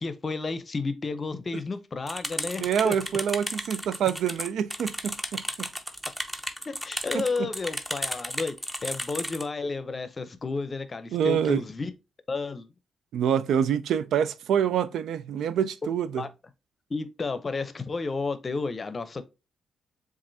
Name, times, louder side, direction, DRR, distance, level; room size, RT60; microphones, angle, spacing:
voice 1, 0.0-3.0 6.7-8.6 8.8-11.9 12.3-12.7 16.2-16.3 16.9-19.2, left 3 dB, 35° left, 0.6 m, -32 dB
sound 1, 2.1-9.4, equal, 5° right, 0.7 m, -34 dB
voice 2, 2.6-5.7 7.1-7.5 11.1-11.6 13.1-16.2, right 8 dB, 80° right, 0.3 m, -26 dB
7.2 x 2.5 x 2.7 m
cardioid pair, 70°, 0 cm